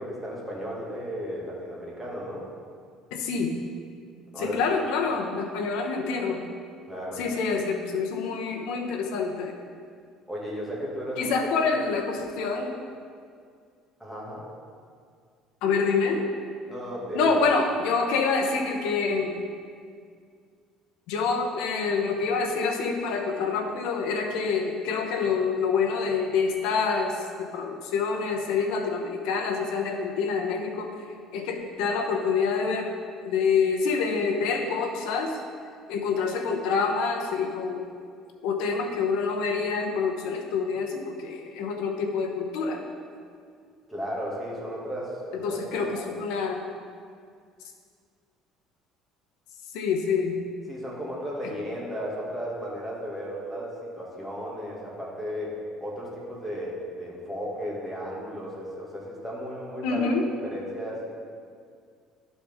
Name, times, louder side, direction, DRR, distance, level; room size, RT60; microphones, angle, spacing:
voice 1, 0.0-2.4 4.3-4.6 6.9-7.4 10.3-11.3 11.6-11.7 14.0-14.4 16.7-17.3 43.9-46.2 50.7-61.1, equal, 5° right, -6 dB, 2.0 m, -35 dB
voice 2, 3.1-3.5 4.4-6.4 7.2-9.5 11.2-12.7 15.6-16.2 17.1-19.3 21.1-31.1 31.3-32.9 33.2-35.4 35.9-37.9 38.4-42.8 45.3-46.7 49.7-50.4 59.8-60.3, left 5 dB, 85° left, 3 dB, 0.9 m, -27 dB
11.5 x 4.1 x 3.5 m, 2.1 s
cardioid pair, 120°, 0 cm